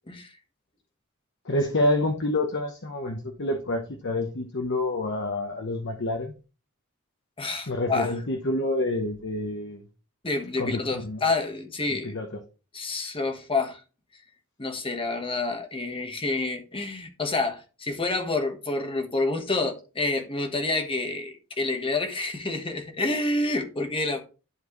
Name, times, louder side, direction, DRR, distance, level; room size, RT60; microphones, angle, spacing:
voice 1, 1.4-6.3 7.7-9.8 10.6-11.2 11.9-12.3, left 1 dB, 55° left, 1.0 m, -28 dB
voice 2, 7.4-8.1 10.2-12.1 12.7-13.8 14.6-24.2, left 3 dB, 25° left, 1.3 m, -28 dB
11.0 x 4.6 x 3.1 m
head